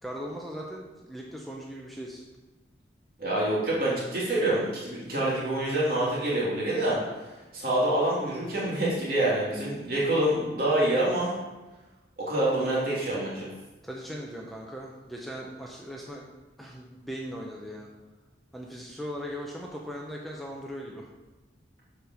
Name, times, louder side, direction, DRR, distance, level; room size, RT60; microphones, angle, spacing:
voice 1, 0.0-2.2 13.8-16.3 16.6-17.9 18.5-21.1, equal, ahead, -2 dB, 0.8 m, -39 dB
voice 2, 3.2-7.0 7.5-11.3 12.2-13.5, right 1 dB, 55° right, -6 dB, 3.0 m, -26 dB
7.7 x 5.1 x 6.4 m, 1.1 s
head